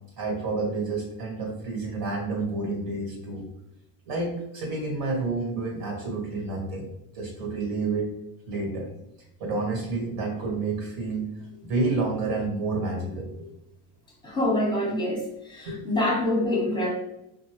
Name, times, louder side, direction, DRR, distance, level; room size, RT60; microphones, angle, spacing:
voice 1, 0.2-3.5 4.1-6.9 7.1-8.1 8.5-8.9 9.4-11.3 11.6-13.5 15.6-15.8, right 3 dB, 65° right, -1 dB, 1.5 m, -29 dB
voice 2, 14.2-15.2 15.5-16.9, left 1 dB, 10° left, -2 dB, 0.9 m, -25 dB
2.7 x 2.2 x 3.1 m, 0.84 s
supercardioid pair, 110°, 44 cm